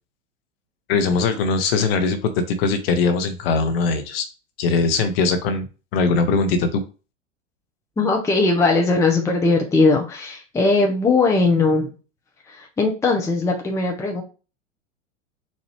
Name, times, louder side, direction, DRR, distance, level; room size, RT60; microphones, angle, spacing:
voice 1, 0.9-4.3 4.6-5.7 5.9-6.8, left 4 dB, 50° left, 9 dB, 1.0 m, -21 dB
voice 2, 8.0-11.9 12.5-14.2, left 3 dB, 10° left, 2 dB, 0.6 m, -19 dB
4.2 x 2.6 x 3.2 m, 0.33 s
figure-of-eight pair, 90°, 38 cm